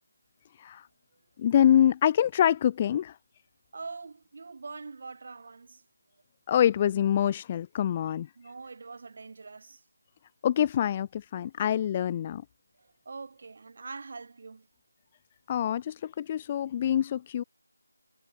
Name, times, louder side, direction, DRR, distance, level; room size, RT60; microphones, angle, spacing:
voice 1, 1.4-3.1 6.5-8.3 10.4-12.4 15.5-17.4, left 10 dB, 20° left, 0.3 m, -25 dB
voice 2, 3.7-5.8 8.4-9.8 12.8-14.7, right 4 dB, 45° right, 1.4 m, -43 dB
figure-of-eight pair, 165°, 0 cm